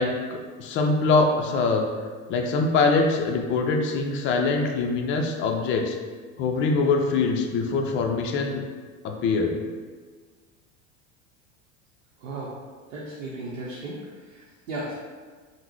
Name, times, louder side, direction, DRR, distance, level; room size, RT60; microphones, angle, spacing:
voice 1, 0.0-1.9 2.3-6.0 6.4-8.6 9.0-9.6, left 3 dB, 35° left, 2 dB, 0.4 m, -23 dB
voice 2, 12.2-12.5 12.9-14.0 14.3-15.0, right 2 dB, 80° right, -6 dB, 0.7 m, -35 dB
3.6 x 2.0 x 3.0 m, 1.5 s
hypercardioid pair, 90°, 38 cm